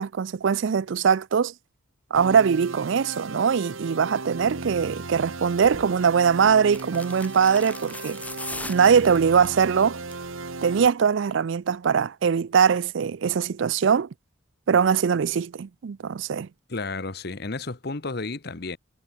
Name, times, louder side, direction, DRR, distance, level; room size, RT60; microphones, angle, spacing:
voice 1, 0.0-1.5 2.1-8.2 8.7-10.0 10.6-14.1 14.7-16.5, right 6 dB, 65° right, 0.4 m, -21 dB
sound 1, 2.1-10.9, right 3 dB, 80° right, 1.8 m, -36 dB
sound 2, 5.6-5.9 6.7-9.6 10.0-10.3 10.6-10.7, left 2 dB, 5° left, 1.5 m, -39 dB
voice 2, 16.7-18.8, left 3 dB, 50° left, 1.1 m, -32 dB
head